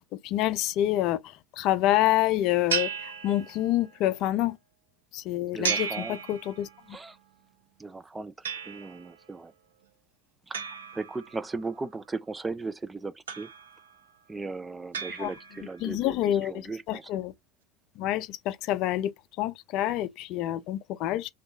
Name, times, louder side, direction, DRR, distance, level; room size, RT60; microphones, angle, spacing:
voice 1, 0.0-4.6 5.1-6.7 15.2-15.3 15.8-17.3 18.0-19.1 19.4-21.3, left 13 dB, 55° left, 0.4 m, -27 dB
sound 1, 2.7-3.9 5.6-6.9 8.4-9.2 10.5-11.7 13.3-14.0 14.9-15.8, right 7 dB, 80° right, 0.5 m, -34 dB
voice 2, 5.5-6.2 6.9-7.2 7.8-9.5 10.5-10.6 10.9-13.5 14.3-17.1, right 3 dB, 15° right, 0.3 m, -37 dB
2.7 x 2.3 x 3.6 m
hypercardioid pair, 80°, 0 cm